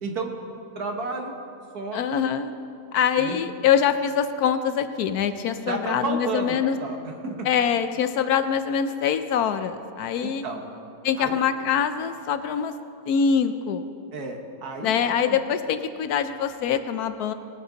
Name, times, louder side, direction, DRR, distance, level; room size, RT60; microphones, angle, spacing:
voice 1, 0.0-0.3 0.7-1.3 1.7-2.1 3.2-3.4 5.7-6.5 6.8-7.0 7.2-7.5 10.2-10.6 11.2-11.3 14.1-15.4, right 3 dB, 65° right, 3 dB, 1.7 m, -31 dB
voice 2, 1.9-2.5 2.9-6.8 7.4-10.4 11.0-12.7 13.1-13.9 14.8-17.3, left 8 dB, 70° left, 10 dB, 1.0 m, -24 dB
19.5 x 9.4 x 3.9 m, 2.6 s
omnidirectional pair, 1.8 m